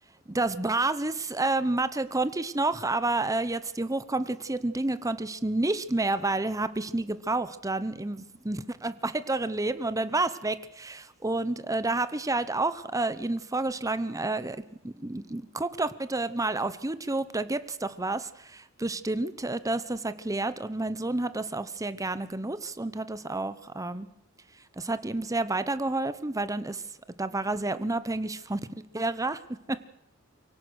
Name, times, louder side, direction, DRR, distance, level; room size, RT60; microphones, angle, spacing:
voice 1, 0.3-24.1 24.8-26.8 27.2-28.6 28.9-29.4 29.7-29.9, right 2 dB, 15° right, 13 dB, 0.8 m, -30 dB
24.0 x 17.0 x 6.4 m, 0.80 s
head